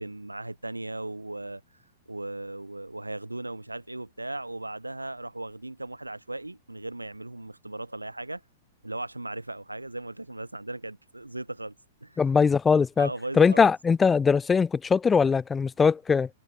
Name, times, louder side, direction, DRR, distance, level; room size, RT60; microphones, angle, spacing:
voice 1, 0.0-1.6 2.1-8.4 8.8-11.7 12.0-12.2 13.0-13.7, right 2 dB, 90° right, 2.1 m, -37 dB
voice 2, 12.2-13.1 13.4-16.3, left 5 dB, 15° left, 0.5 m, -21 dB
open air
figure-of-eight pair, 105°, 0 cm